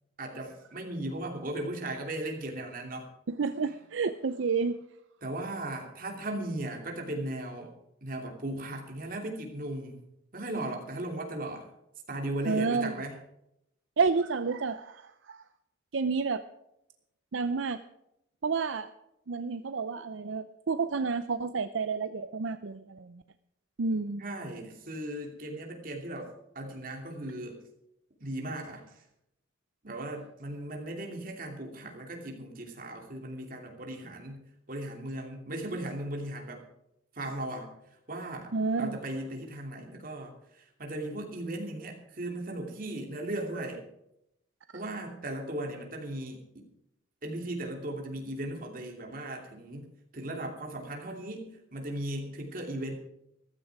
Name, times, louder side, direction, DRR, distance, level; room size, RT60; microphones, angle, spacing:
voice 1, 0.2-3.1 5.2-7.7 8.0-10.0 10.3-11.7 12.1-13.2 24.2-27.6 28.2-29.0 29.8-36.6 37.1-37.7 38.1-43.8 44.7-46.7 47.2-52.9, right 1 dB, 45° right, 2 dB, 2.8 m, -37 dB
voice 2, 3.3-4.8 12.5-12.9 14.0-15.4 15.9-16.4 17.3-17.8 18.4-18.9 19.3-23.2 23.8-24.2 38.5-39.0 44.7-44.8, right 4 dB, 70° right, 11 dB, 0.5 m, -30 dB
14.5 x 14.0 x 4.7 m, 0.82 s
head